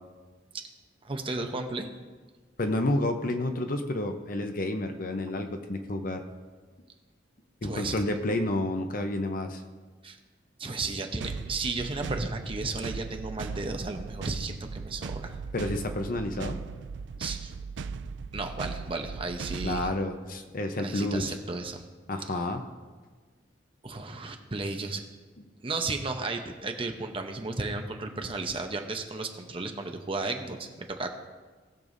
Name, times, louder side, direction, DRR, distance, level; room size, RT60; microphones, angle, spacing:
voice 1, 1.0-1.9 7.6-8.0 10.0-10.2 10.6-15.4 17.2-17.5 18.3-19.9 20.8-21.8 23.8-25.0 25.6-31.1, right 3 dB, 30° right, 4 dB, 0.8 m, -34 dB
voice 2, 2.6-6.2 7.6-9.6 15.5-16.6 19.6-21.4 22.1-22.6, left 1 dB, 50° left, 6 dB, 0.8 m, -30 dB
sound 1, 11.2-20.0, right 5 dB, 65° right, 0.4 m, -38 dB
19.5 x 6.9 x 2.7 m, 1.4 s
head